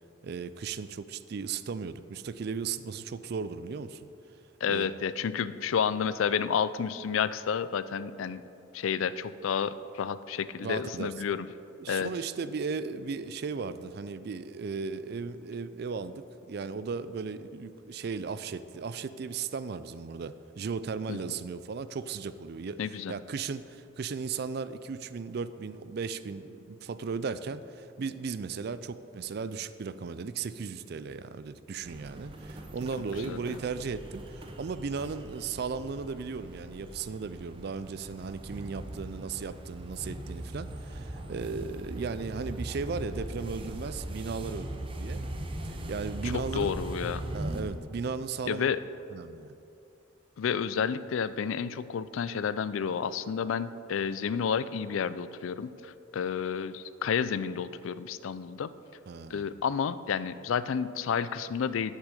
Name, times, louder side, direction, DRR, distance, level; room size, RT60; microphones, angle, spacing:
voice 1, 0.2-4.1 4.7-4.9 10.6-11.1 11.8-45.2 45.6-46.7 47.3-48.7 49.1-49.5 59.1-59.4, right 5 dB, 55° right, 14 dB, 0.4 m, -36 dB
voice 2, 4.6-8.4 8.7-11.5 11.9-12.1 21.1-21.2 22.8-23.1 33.2-33.6 46.2-47.2 48.5-48.8 50.4-58.7 59.3-61.9, left 7 dB, 80° left, 15 dB, 0.4 m, -30 dB
sound 1, 31.8-47.6, right 1 dB, 25° right, 0.7 m, -40 dB
8.3 x 6.2 x 7.5 m, 2.8 s
head